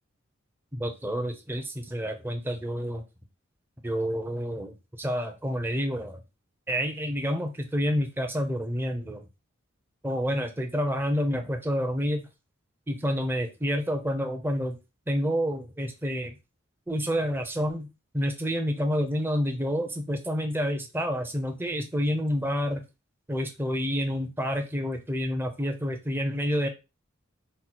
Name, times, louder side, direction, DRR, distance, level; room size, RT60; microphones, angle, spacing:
voice 1, 0.7-3.0 3.8-6.2 6.7-9.2 10.0-12.3 12.9-14.8 15.1-16.4 16.9-17.9 18.1-22.8 23.3-26.7, equal, 10° right, 0.7 m, -28 dB
4.4 x 2.1 x 4.1 m
head